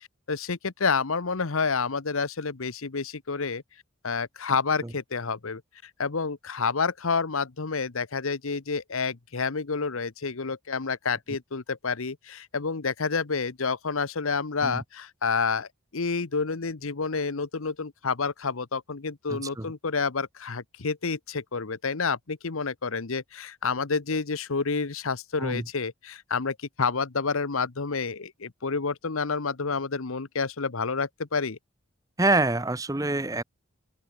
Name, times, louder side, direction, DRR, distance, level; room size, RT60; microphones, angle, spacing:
voice 1, 0.0-3.6 4.0-5.6 6.0-31.6, left 4 dB, 75° left, 1.0 m, -29 dB
voice 2, 19.3-19.7 25.4-25.6 32.2-33.4, right 2 dB, 15° right, 0.7 m, -26 dB
head